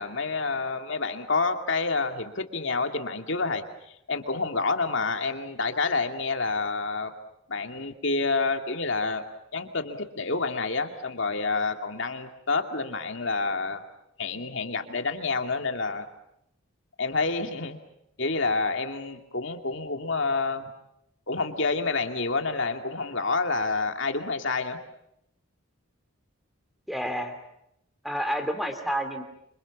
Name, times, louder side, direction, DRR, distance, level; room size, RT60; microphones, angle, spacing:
voice 1, 0.0-7.1 7.5-9.2 9.5-13.8 14.2-16.1 17.0-17.8 18.2-20.7 21.3-24.8, left 3 dB, 55° left, 6 dB, 2.4 m, -28 dB
voice 2, 26.9-27.3 28.0-29.2, equal, ahead, 8 dB, 2.9 m, -29 dB
27.5 x 26.0 x 7.3 m, 0.78 s
head